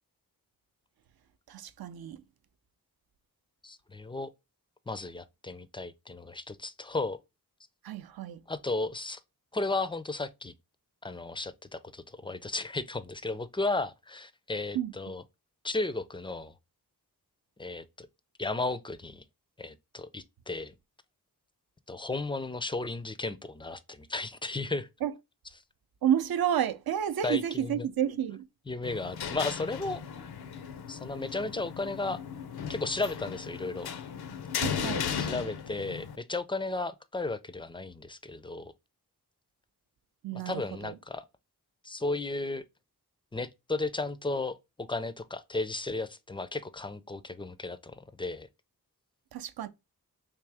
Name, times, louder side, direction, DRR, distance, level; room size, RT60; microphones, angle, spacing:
voice 1, 1.5-2.2 7.8-8.4 14.7-14.9 25.0-25.1 26.0-28.5 34.6-35.1 40.2-40.9 49.3-49.7, right 10 dB, 70° right, 0.5 m, -30 dB
voice 2, 3.6-4.3 4.9-7.2 8.5-9.2 9.5-10.5 11.0-15.2 15.6-16.5 17.6-18.1 18.4-19.2 19.6-20.7 21.9-24.9 27.2-27.8 28.7-30.0 30.9-32.2 32.7-33.9 35.2-38.7 40.5-41.2 41.8-42.6 43.3-48.5, left 2 dB, 15° left, 0.3 m, -34 dB
sound 1, 28.8-36.2, left 7 dB, 80° left, 0.5 m, -36 dB
3.6 x 2.7 x 3.3 m
cardioid pair, 60°, 38 cm